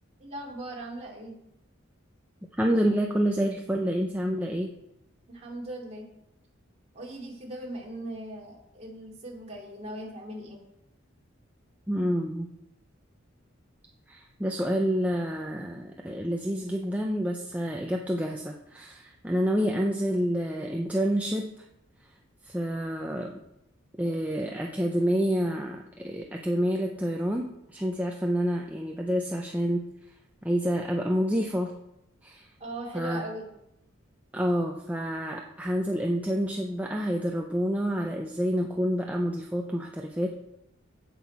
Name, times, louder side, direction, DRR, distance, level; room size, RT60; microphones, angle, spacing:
voice 1, 0.2-1.4 5.3-6.1 6.9-10.6 32.6-33.5, right 1 dB, 30° right, -3 dB, 2.8 m, -39 dB
voice 2, 2.6-4.7 11.9-12.5 14.1-21.5 22.4-23.3 24.0-29.8 30.4-31.8 32.2-32.5 32.9-33.2 34.3-40.3, equal, 5° right, 1 dB, 0.6 m, -28 dB
16.5 x 5.9 x 4.3 m, 0.82 s
head